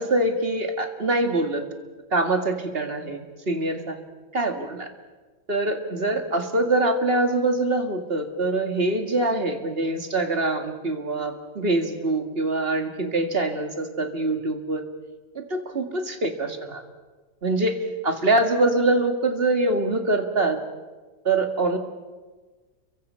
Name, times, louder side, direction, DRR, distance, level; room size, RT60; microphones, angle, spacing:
voice 1, 0.0-1.6 2.1-4.0 4.3-4.9 5.5-14.8 15.3-16.8 17.4-17.8 18.0-20.6 21.2-21.8, right 2 dB, 35° right, 5 dB, 2.4 m, -24 dB
30.0 x 23.5 x 5.7 m, 1.3 s
omnidirectional pair, 1.8 m